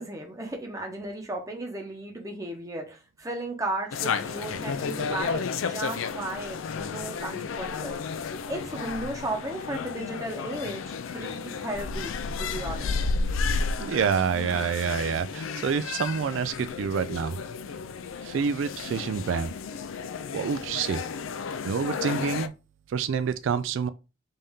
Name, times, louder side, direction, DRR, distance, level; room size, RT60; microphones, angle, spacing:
voice 1, 0.0-8.0 8.5-13.0, right 2 dB, 15° right, 0.9 m, -35 dB
sound 1, 3.9-22.5, left 5 dB, 85° left, 0.4 m, -32 dB
voice 2, 13.8-17.4 18.2-19.5 20.3-21.0 21.6-22.5 22.9-23.9, right 6 dB, 75° right, 0.3 m, -27 dB
5.4 x 2.7 x 3.5 m
head